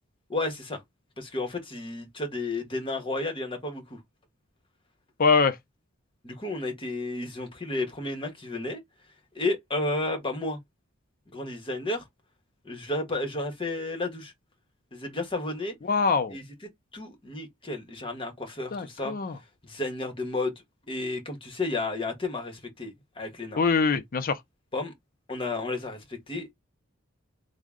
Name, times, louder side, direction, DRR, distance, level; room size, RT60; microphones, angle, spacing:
voice 1, 0.3-0.8 1.2-4.0 6.2-8.8 9.3-10.6 11.3-12.0 12.6-14.3 14.9-15.7 16.3-16.4 16.9-19.1 19.6-20.5 20.9-23.6 24.7-24.9 25.3-26.5, left 2 dB, 25° left, 1.0 m, -32 dB
voice 2, 5.2-5.6 15.8-16.4 18.7-19.4 23.6-24.4, left 5 dB, 45° left, 0.5 m, -23 dB
3.6 x 2.0 x 3.6 m
head